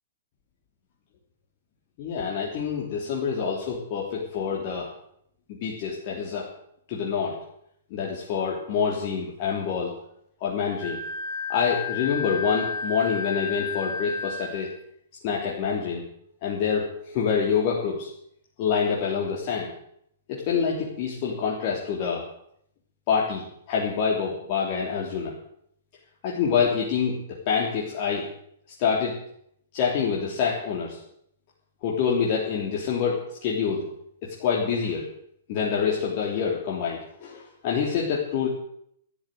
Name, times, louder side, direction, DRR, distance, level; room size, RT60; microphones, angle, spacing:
voice 1, 2.0-4.9 5.5-6.5 6.9-7.3 7.9-9.9 10.4-11.0 11.5-14.7 15.2-16.1 16.4-18.1 18.6-19.7 20.3-22.2 23.1-25.3 26.2-28.3 28.8-29.1 29.7-31.0 31.8-33.8 34.2-35.0 35.5-38.5, left 6 dB, 45° left, -3 dB, 3.2 m, -26 dB
Wind instrument woodwind instrument, 10.8-14.7, left 4 dB, 25° left, 3.9 m, -32 dB
13.5 x 11.0 x 7.8 m, 0.71 s
hypercardioid pair, 115°, 0 cm